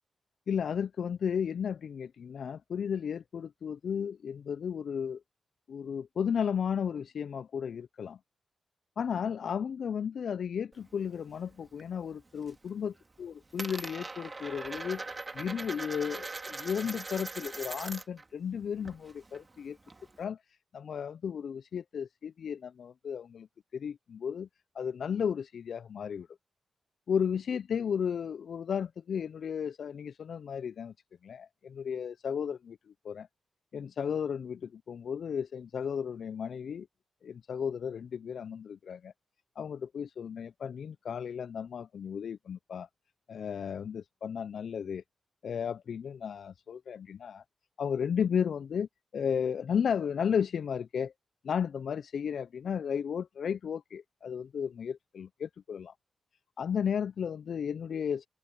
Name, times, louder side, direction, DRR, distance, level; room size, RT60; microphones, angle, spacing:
voice 1, 0.5-5.2 5.7-8.2 9.0-15.0 15.3-19.8 20.2-20.4 20.7-23.5 23.7-24.5 24.7-26.3 27.1-30.9 31.2-32.8 33.0-33.3 33.7-36.9 37.2-39.1 39.6-42.9 43.3-45.0 45.4-47.4 47.8-51.1 51.4-55.9 56.6-58.3, left 7 dB, 75° left, 0.3 m, -34 dB
Coin (dropping), 10.7-11.9 12.2-12.7 12.9-18.2 18.5-20.2, right 3 dB, 35° right, 2.2 m, -41 dB
open air
cardioid pair, 50°, 0 cm